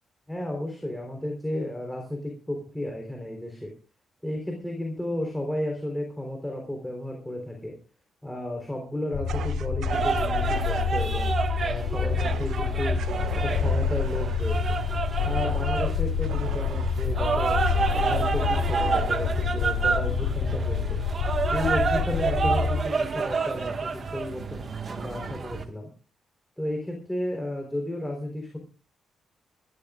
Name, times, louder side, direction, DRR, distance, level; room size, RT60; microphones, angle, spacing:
voice 1, 0.3-3.7 4.2-7.8 8.2-11.3 11.6-13.0 13.3-14.8 15.2-17.6 17.9-21.0 21.5-25.9 26.6-28.6, left 1 dB, 5° left, 1 dB, 3.9 m, -33 dB
sound 1, 9.1-22.8, left 6 dB, 80° left, 6.7 m, -27 dB
Fire, 9.3-10.9 12.2-12.6 13.0-17.1 17.6-19.5, right 9 dB, 75° right, 0.9 m, -41 dB
sound 2, 9.9-25.6, right 5 dB, 40° right, 1.6 m, -29 dB
26.0 x 13.5 x 2.5 m, 0.34 s
cardioid pair, 120°, 0 cm